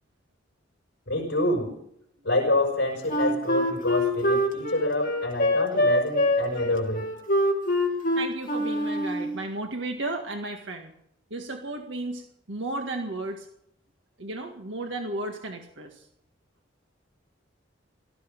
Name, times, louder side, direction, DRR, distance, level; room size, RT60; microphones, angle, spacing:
voice 1, 1.1-1.7 2.2-7.1, left 1 dB, 65° left, 0 dB, 5.3 m, -27 dB
Wind instrument woodwind instrument, 3.1-9.4, left 1 dB, 45° left, 3.0 m, -24 dB
voice 2, 8.2-10.9 11.3-13.5 14.2-16.1, right 2 dB, 70° right, 3 dB, 1.9 m, -34 dB
18.0 x 14.0 x 5.3 m, 0.73 s
head